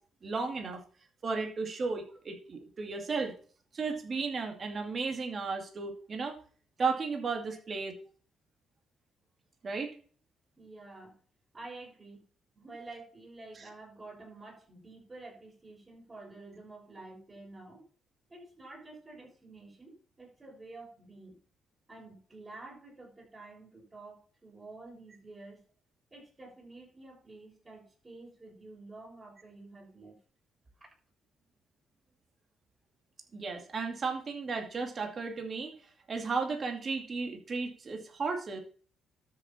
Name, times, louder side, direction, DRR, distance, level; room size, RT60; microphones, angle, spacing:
voice 1, 0.2-0.8 1.2-3.3 3.7-6.4 6.8-8.0 9.6-9.9 13.6-13.7 33.3-35.7 36.1-38.6, right 4 dB, 45° right, 4 dB, 2.4 m, -34 dB
voice 2, 10.6-11.2 11.5-12.2 12.5-17.8 18.3-21.4 21.9-25.6 26.1-30.2, right 2 dB, 25° right, 0 dB, 6.7 m, -49 dB
13.0 x 6.9 x 4.4 m, 0.43 s
cardioid pair, 90°, 0 cm